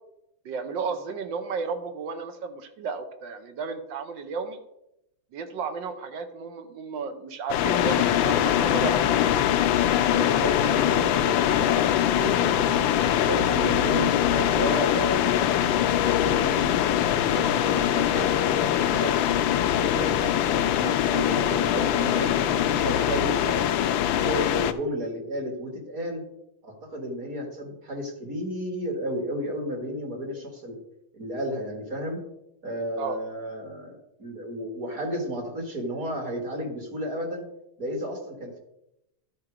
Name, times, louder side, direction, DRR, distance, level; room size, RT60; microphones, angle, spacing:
voice 1, 0.4-4.6 5.3-9.2 33.0-33.2, right 5 dB, 70° right, 7 dB, 1.4 m, -33 dB
sound 1, 7.5-24.7, left 11 dB, 75° left, 1.3 m, -23 dB
voice 2, 10.1-12.9 13.2-15.6 16.1-19.5 19.8-23.8 24.2-26.2 26.6-30.8 31.1-32.2 32.6-37.4 37.8-38.6, equal, 45° right, 2 dB, 2.0 m, -33 dB
12.0 x 4.5 x 4.9 m, 0.84 s
omnidirectional pair, 2.3 m